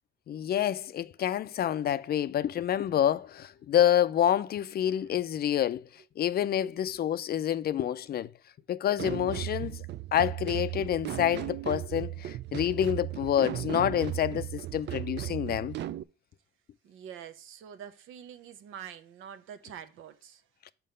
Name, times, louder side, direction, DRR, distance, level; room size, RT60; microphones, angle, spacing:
voice 1, 0.3-5.9 6.2-8.3 8.7-9.9 10.1-15.7, left 10 dB, 50° left, 0.4 m, -28 dB
sound 1, 9.0-16.0, right 14 dB, 60° right, 0.4 m, -36 dB
voice 2, 16.8-20.5, right 9 dB, 80° right, 0.8 m, -46 dB
5.6 x 4.6 x 5.3 m
cardioid pair, 90°, 20 cm